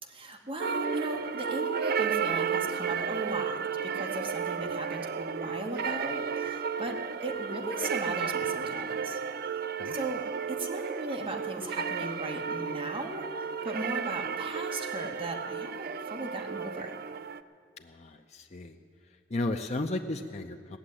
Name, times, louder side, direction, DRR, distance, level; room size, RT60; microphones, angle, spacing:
voice 1, 0.0-9.2 9.5-9.6 9.9-13.3 13.6-17.0, right 1 dB, 30° right, 1 dB, 1.6 m, -37 dB
sound 1, 0.6-17.4, right 6 dB, 55° right, 0.4 m, -33 dB
voice 2, 17.8-18.8 19.3-20.8, left 2 dB, 40° left, 3 dB, 0.6 m, -34 dB
17.5 x 7.3 x 9.9 m, 2.1 s
head